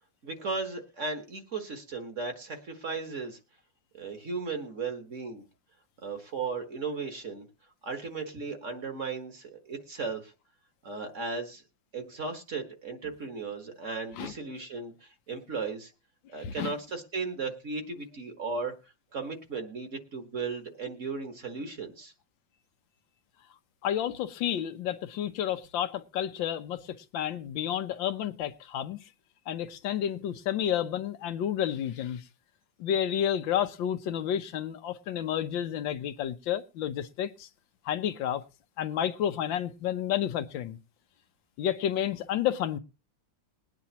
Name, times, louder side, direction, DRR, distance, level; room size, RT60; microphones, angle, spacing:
voice 1, 0.2-3.4 3.9-5.4 6.0-7.5 7.8-10.3 10.8-11.6 11.9-15.9 16.3-18.7 19.1-22.1, right 4 dB, 45° right, 1.6 m, -36 dB
voice 2, 16.4-16.7 23.8-29.0 29.5-32.2 32.8-37.5 37.8-38.4 38.8-40.8 41.6-42.8, left 10 dB, 85° left, 1.5 m, -30 dB
21.0 x 9.3 x 2.8 m
omnidirectional pair, 2.0 m